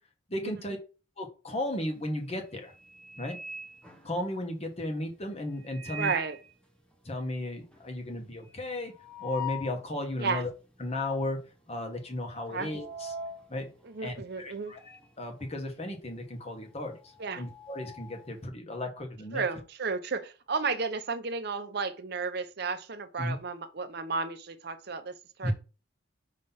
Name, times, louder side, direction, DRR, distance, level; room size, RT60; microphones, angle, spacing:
voice 1, 0.3-0.8 1.2-2.7 3.2-3.4 4.0-6.1 7.0-8.9 9.2-10.5 10.8-11.4 11.7-13.1 13.5-13.7 14.0-14.8 15.2-19.4 23.2-23.3 25.4-25.5, left 1 dB, 35° left, 1.3 m, -34 dB
sound 1, 1.8-2.1 2.5-4.6 5.6-6.5 6.9-7.0 7.2-7.3 7.7-9.9 10.3-10.4 11.2-11.6 11.8-15.1 15.4-18.4, equal, 5° left, 0.9 m, -42 dB
voice 2, 5.9-6.4 10.2-10.4 12.5-12.7 13.8-14.7 17.2-17.4 19.3-25.1 25.4-25.5, right 4 dB, 55° right, 0.7 m, -33 dB
5.8 x 3.2 x 5.5 m
head